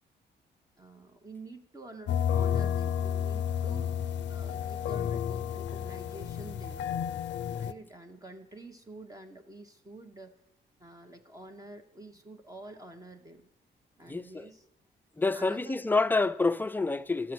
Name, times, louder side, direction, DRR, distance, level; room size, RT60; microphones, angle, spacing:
voice 1, 0.8-6.9 7.6-10.4 10.8-13.5 14.0-14.7 15.3-15.9, right 2 dB, 20° right, 0.8 m, -48 dB
sound 1, 2.1-7.7, left 9 dB, 75° left, 0.4 m, -31 dB
voice 2, 14.1-14.5 15.2-17.3, left 3 dB, 10° left, 0.3 m, -28 dB
12.5 x 6.7 x 6.0 m
cardioid pair, 115°, 19 cm